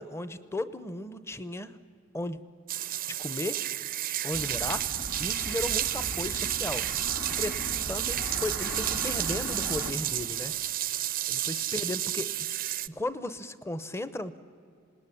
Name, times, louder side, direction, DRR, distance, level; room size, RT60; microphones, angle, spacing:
voice 1, 0.0-1.8 2.1-2.4 3.1-3.6 4.2-6.9 7.4-7.6 7.9-10.5 11.3-12.3 12.9-14.4, left 2 dB, 15° left, 14 dB, 0.8 m, -35 dB
sound 1, 2.7-12.9, right 13 dB, 45° right, 0.6 m, -31 dB
sound 2, 4.3-9.9, left 1 dB, 75° left, 2.5 m, -39 dB
27.0 x 19.0 x 10.0 m, 2.3 s
head